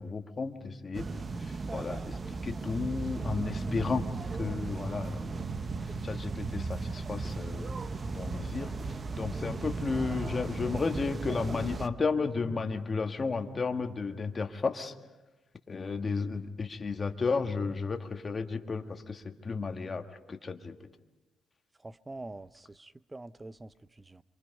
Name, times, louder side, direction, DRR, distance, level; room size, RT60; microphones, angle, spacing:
voice 1, 0.0-4.1 4.4-5.4 5.8-7.7 8.1-14.9 15.7-20.8, left 4 dB, 35° left, 5 dB, 1.7 m, -33 dB
sound 1, 0.9-11.9, right 3 dB, 35° right, 1.0 m, -36 dB
voice 2, 21.8-24.2, right 2 dB, 20° right, 16 dB, 0.6 m, -45 dB
26.5 x 24.0 x 5.5 m, 1.1 s
cardioid pair, 90°, 0 cm